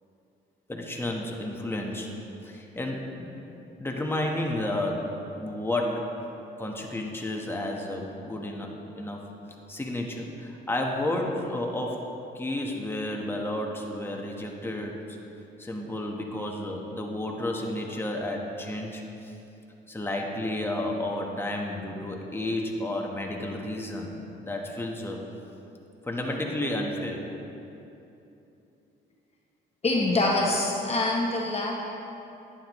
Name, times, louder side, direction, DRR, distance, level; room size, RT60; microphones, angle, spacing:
voice 1, 0.7-2.1 2.4-3.3 3.8-6.2 6.6-9.2 9.7-12.0 12.3-15.0 15.6-19.3 19.9-25.2 26.0-27.2, left 1 dB, 10° left, 0 dB, 1.2 m, -31 dB
voice 2, 29.8-31.7, left 2 dB, 30° left, -1 dB, 1.0 m, -25 dB
11.0 x 9.4 x 3.1 m, 2.9 s
cardioid pair, 90°, 20 cm